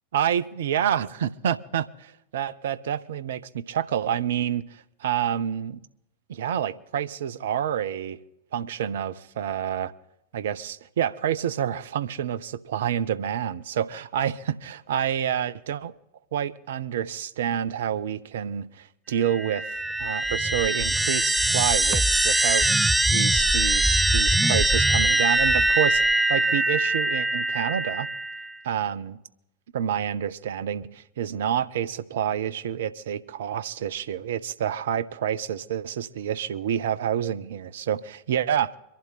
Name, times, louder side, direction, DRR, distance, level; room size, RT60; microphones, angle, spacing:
voice 1, 0.1-5.8 6.3-8.2 8.5-9.9 10.3-15.9 16.3-19.7 20.0-22.7 23.1-28.1 28.6-29.2 29.7-38.8, right 9 dB, 60° right, 0.7 m, -28 dB
sound 1, 19.2-28.5, right 2 dB, 5° right, 0.4 m, -22 dB
23.5 x 11.5 x 4.0 m
figure-of-eight pair, 90°, 0 cm